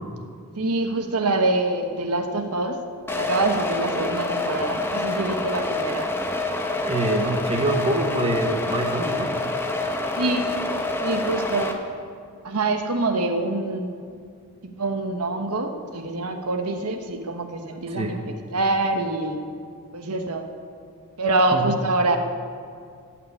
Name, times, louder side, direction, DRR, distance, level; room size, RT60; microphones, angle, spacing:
voice 1, 0.6-2.8 3.1-6.1 10.2-10.5 11.0-11.8 12.4-14.0 14.6-18.2 18.5-19.4 19.9-20.5 21.2-22.2, right 2 dB, 85° right, 5 dB, 1.2 m, -25 dB
sound 1, 3.1-11.7, left 2 dB, 10° left, 0.9 m, -27 dB
voice 2, 6.9-9.3 17.9-18.2 21.5-21.7, right 1 dB, 25° right, 3 dB, 1.1 m, -25 dB
15.0 x 5.9 x 9.8 m, 2.2 s
head